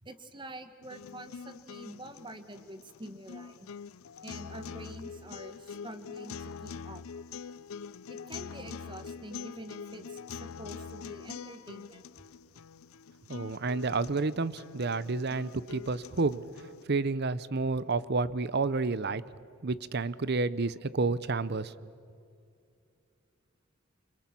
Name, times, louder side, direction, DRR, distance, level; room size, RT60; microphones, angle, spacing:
voice 1, 0.0-3.7 4.2-7.0 8.1-12.0, right 1 dB, 25° right, 9 dB, 1.5 m, -46 dB
sound 1, 0.8-16.8, left 6 dB, 85° left, 0.5 m, -45 dB
voice 2, 13.3-16.5 16.9-19.2 19.6-21.7, right 3 dB, 50° right, 18 dB, 0.7 m, -30 dB
28.5 x 25.5 x 6.0 m, 2.5 s
head